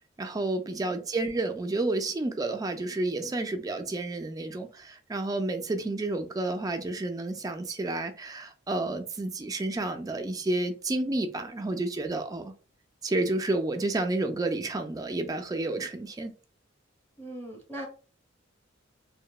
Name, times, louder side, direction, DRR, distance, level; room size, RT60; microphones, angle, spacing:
voice 1, 0.2-12.5 13.0-16.3, right 2 dB, 20° right, 0.3 m, -30 dB
voice 2, 17.2-17.9, right 1 dB, 5° left, 0.8 m, -40 dB
2.8 x 2.0 x 2.2 m
head